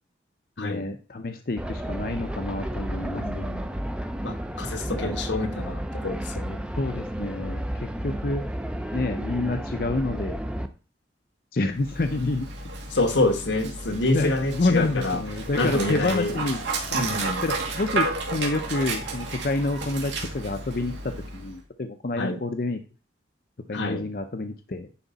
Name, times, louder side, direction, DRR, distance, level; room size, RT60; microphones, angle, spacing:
voice 1, 0.6-3.5 4.9-5.1 6.8-8.4 8.9-10.4 11.5-12.5 13.9-16.6 17.4-22.8 23.7-24.9, left 2 dB, 50° left, 0.6 m, -28 dB
sound 1, 1.6-10.7, equal, 5° right, 0.5 m, -32 dB
voice 2, 3.2-3.7 4.2-6.7 12.9-15.2 15.6-16.4 16.9-17.4 22.2-22.4 23.7-24.0, left 2 dB, 85° left, 1.2 m, -27 dB
Dog, 11.7-21.6, right 3 dB, 85° right, 2.1 m, -32 dB
9.9 x 4.6 x 4.1 m
head